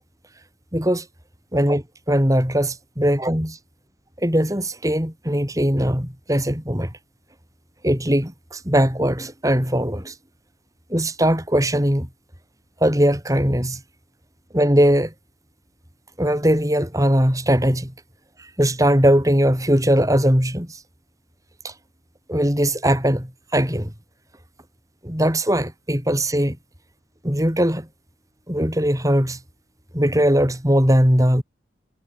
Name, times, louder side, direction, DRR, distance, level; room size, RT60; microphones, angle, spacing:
voice 1, 0.7-1.0 1.5-3.6 4.2-6.9 7.8-10.1 10.9-12.1 12.8-13.8 14.5-15.1 16.2-17.9 18.6-20.8 21.6-21.7 22.3-23.9 25.0-26.6 27.2-27.9 28.5-29.4 29.9-31.4, equal, 20° right, 5.7 m, -20 dB
head